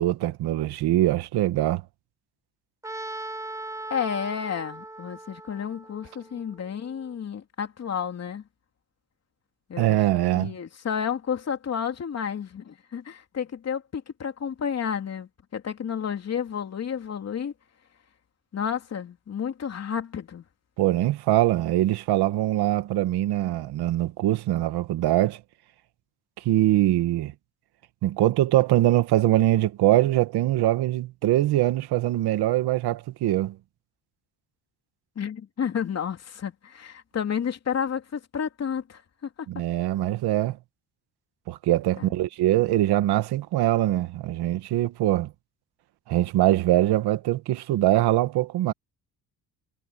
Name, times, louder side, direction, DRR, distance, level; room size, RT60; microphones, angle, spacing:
voice 1, 0.0-1.8 9.8-10.5 20.8-25.4 26.4-27.3 28.0-33.6 39.5-40.6 41.5-45.3 46.1-48.7, right 14 dB, 80° right, 1.5 m, -23 dB
Trumpet, 2.8-6.9, right 2 dB, 10° right, 4.8 m, -39 dB
voice 2, 3.9-8.4 9.7-17.5 18.5-20.4 35.1-39.0 39.4-39.5 42.0-42.1, left 7 dB, 40° left, 3.1 m, -31 dB
cardioid pair, 130°, 38 cm